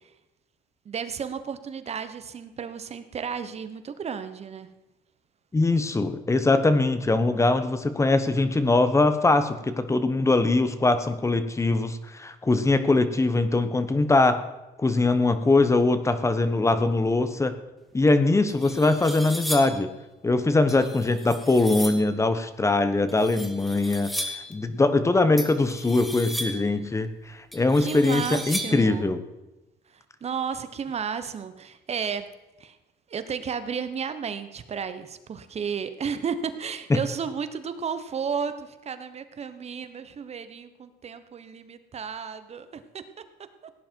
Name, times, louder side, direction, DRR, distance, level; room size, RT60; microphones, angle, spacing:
voice 1, 0.8-4.7 27.8-29.1 29.9-32.3 32.6-32.8 33.1-43.0, right 6 dB, 40° right, 11 dB, 1.2 m, -33 dB
voice 2, 5.5-14.4 14.8-17.5 17.9-19.9 20.2-29.2 36.9-37.0, left 2 dB, 15° left, 11 dB, 1.2 m, -22 dB
sound 1, 18.0-18.1 18.5-19.9 20.7-22.1 23.1-24.5 25.4-26.7 27.5-28.9, equal, ahead, 1.8 m, -35 dB
17.0 x 10.0 x 4.7 m, 1.0 s
cardioid pair, 110°, 17 cm